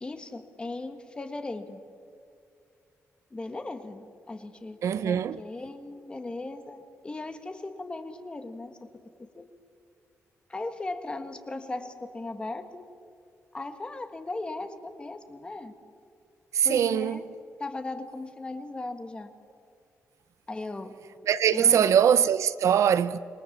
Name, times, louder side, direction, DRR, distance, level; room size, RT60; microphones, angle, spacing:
voice 1, 0.0-1.8 3.3-8.9 9.4-9.5 10.5-12.8 13.5-15.7 16.6-17.2 17.6-19.3 20.5-21.0 21.5-21.9, left 2 dB, 20° left, 1.5 m, -37 dB
voice 2, 4.8-5.4 16.5-17.2 21.2-23.2, right 9 dB, 70° right, 0.6 m, -22 dB
27.0 x 23.0 x 7.3 m
wide cardioid pair, 175°, 5 cm